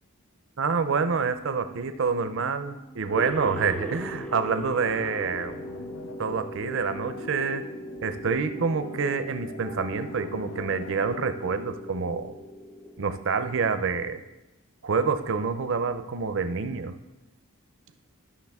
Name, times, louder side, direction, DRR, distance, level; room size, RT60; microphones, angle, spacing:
voice 1, 0.6-5.6 6.2-7.7 8.0-12.4 13.0-14.2 14.8-16.9, right 5 dB, 60° right, 10 dB, 0.6 m, -27 dB
sound 1, 0.7-8.6, right 2 dB, 50° left, 1.8 m, -50 dB
sound 2, 3.2-14.0, equal, 5° left, 0.4 m, -40 dB
sound 3, 4.6-11.3, left 4 dB, 75° left, 0.4 m, -44 dB
12.0 x 6.0 x 3.5 m, 1.0 s
head